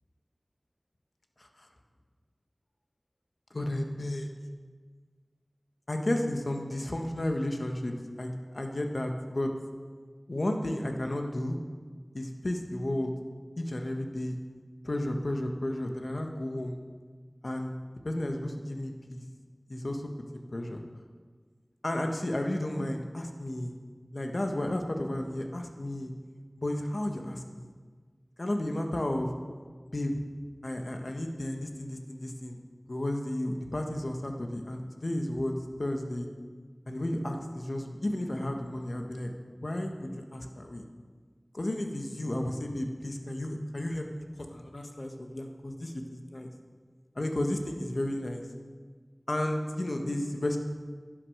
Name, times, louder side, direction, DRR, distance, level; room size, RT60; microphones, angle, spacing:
voice 1, 3.5-4.3 5.9-9.5 10.3-11.6 12.1-13.1 13.6-14.4 14.8-16.8 17.4-17.7 18.0-19.2 19.7-20.0 20.3-20.8 21.8-23.8 24.1-26.1 26.6-27.7 28.4-29.3 29.9-30.2 30.6-32.6 32.9-35.5 35.8-36.3 36.9-39.3 39.6-40.8 41.5-44.2 44.5-46.5 47.1-48.4 49.3-50.6, left 1 dB, 65° left, 3 dB, 1.5 m, -33 dB
11.0 x 9.9 x 6.6 m, 1.6 s
wide cardioid pair, 40°, 0 cm